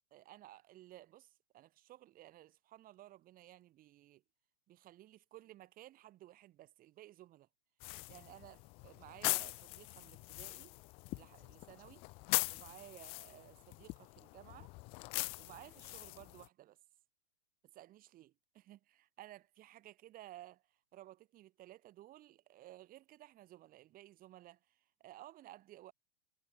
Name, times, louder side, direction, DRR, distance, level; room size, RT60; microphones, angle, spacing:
voice 1, 0.1-4.2 4.7-7.5 8.1-10.8 11.1-12.1 12.5-14.7 15.4-16.8 17.7-25.9, right 14 dB, 25° right, 2.6 m, -56 dB
sound 1, 7.8-16.5, left 26 dB, 15° left, 0.4 m, -41 dB
supercardioid pair, 155°, 36 cm